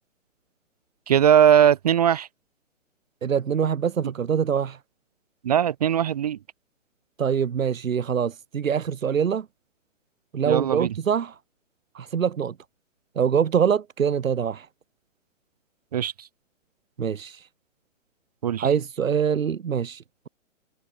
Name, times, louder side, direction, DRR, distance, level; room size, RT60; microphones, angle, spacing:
voice 1, 1.1-2.3 5.4-6.4 10.5-10.9 15.9-16.1 18.4-18.7, right 9 dB, 30° right, 0.5 m, -19 dB
voice 2, 3.2-4.8 7.2-9.5 10.3-11.3 11.9-12.6 13.2-14.7 17.0-17.4 18.6-20.3, right 7 dB, 90° right, 0.9 m, -24 dB
hypercardioid pair, 140°, 39 cm